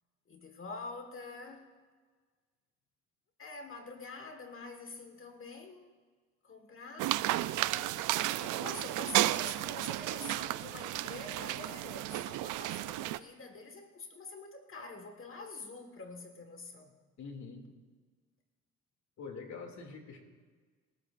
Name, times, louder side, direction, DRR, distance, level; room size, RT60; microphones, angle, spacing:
voice 1, 0.3-1.7 3.4-5.9 6.4-7.2 8.3-17.0, left 3 dB, 45° left, 4 dB, 1.6 m, -46 dB
sound 1, 7.0-13.2, right 15 dB, 90° right, 0.5 m, -33 dB
voice 2, 17.2-17.7 19.2-20.2, left 4 dB, 70° left, 3 dB, 2.5 m, -45 dB
27.5 x 13.5 x 2.5 m, 1.5 s
cardioid pair, 90°, 30 cm